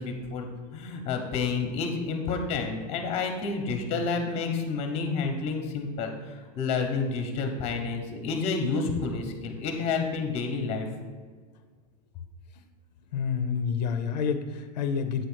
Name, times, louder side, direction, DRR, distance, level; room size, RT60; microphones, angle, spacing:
voice 1, 0.0-10.9, left 4 dB, 30° left, 5 dB, 1.0 m, -30 dB
voice 2, 13.1-15.3, left 6 dB, 80° left, 8 dB, 0.6 m, -28 dB
8.0 x 3.1 x 6.2 m, 1.5 s
supercardioid pair, 155°, 21 cm